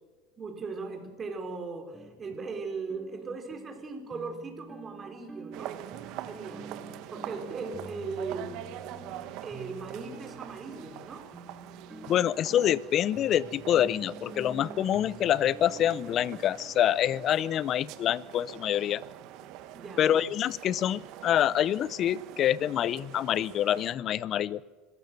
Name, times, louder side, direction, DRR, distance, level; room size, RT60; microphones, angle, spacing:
voice 1, 0.4-5.8 6.3-6.7 7.1-8.5 9.4-11.3 17.5-17.6 19.7-20.2, right 4 dB, 30° right, 4 dB, 4.5 m, -38 dB
sound 1, 1.9-18.2, right 2 dB, 10° right, 2.1 m, -49 dB
sound 2, 5.5-23.9, right 12 dB, 65° right, 1.6 m, -44 dB
voice 2, 12.1-19.0 20.0-24.6, left 11 dB, 45° left, 20 dB, 0.7 m, -26 dB
26.0 x 15.5 x 6.8 m, 1.4 s
supercardioid pair, 110°, 0 cm